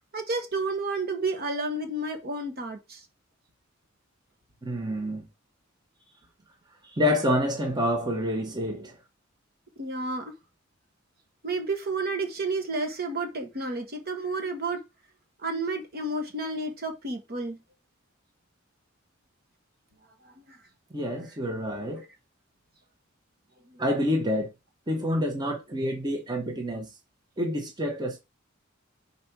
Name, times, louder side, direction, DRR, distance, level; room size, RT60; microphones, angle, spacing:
voice 1, 0.1-3.0 9.8-10.3 11.4-14.8 15.4-17.6 20.2-20.6 23.7-23.8, right 2 dB, 50° right, 1.6 m, -31 dB
voice 2, 4.6-5.2 6.9-9.0 20.9-22.0 23.8-24.5 24.9-26.9 27.4-28.2, left 1 dB, 20° right, 1.2 m, -27 dB
5.3 x 4.1 x 6.0 m
head